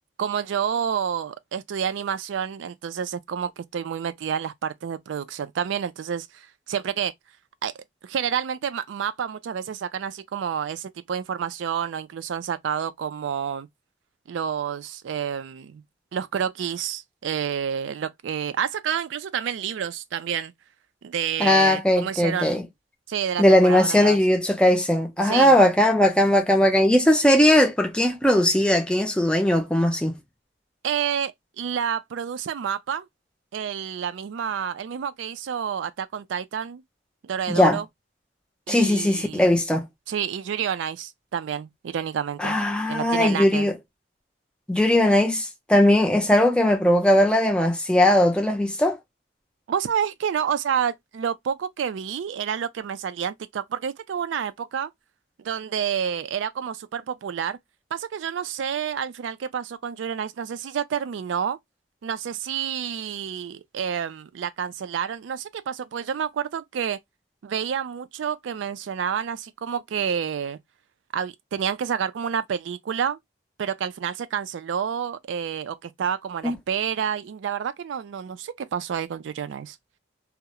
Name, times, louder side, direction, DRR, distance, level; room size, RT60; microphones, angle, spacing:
voice 1, 0.2-7.1 7.6-7.7 8.0-13.7 14.3-15.8 16.1-20.5 21.0-22.6 23.1-24.2 25.2-25.6 30.8-33.1 33.5-36.8 37.2-37.9 38.7-39.5 40.1-42.6 42.9-43.7 49.7-54.9 55.4-57.6 57.9-61.6 62.0-67.0 67.4-70.6 71.1-73.2 73.6-79.8, right 8 dB, 75° right, 0.3 m, -29 dB
voice 2, 21.4-22.7 23.4-30.2 37.5-37.8 38.7-39.9 42.4-43.7 44.7-49.0 76.4-76.6, left 1 dB, 5° left, 0.4 m, -19 dB
2.3 x 2.0 x 2.7 m
head